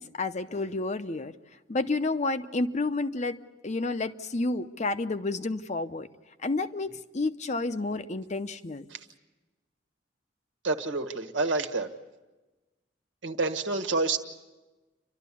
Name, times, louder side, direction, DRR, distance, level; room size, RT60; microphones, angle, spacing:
voice 1, 0.0-1.3 1.7-3.4 3.6-6.1 6.4-8.9, left 2 dB, 40° left, 10 dB, 0.7 m, -30 dB
voice 2, 10.6-11.9 13.2-14.2, right 3 dB, 85° right, 5 dB, 1.5 m, -28 dB
29.5 x 12.5 x 8.4 m, 1.2 s
head